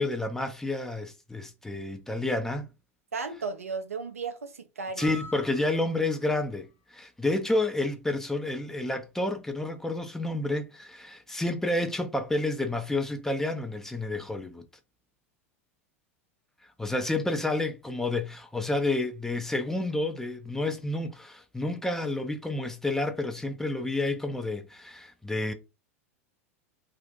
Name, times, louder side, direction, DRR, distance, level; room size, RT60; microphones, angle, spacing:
voice 1, 0.0-2.7 5.0-14.6 16.8-25.5, left 2 dB, 5° left, 0.5 m, -30 dB
voice 2, 3.1-5.1, right 4 dB, 75° right, 0.5 m, -35 dB
sound 1, 5.0-6.3, left 2 dB, 40° left, 1.2 m, -45 dB
2.5 x 2.5 x 3.6 m
figure-of-eight pair, 85°, 8 cm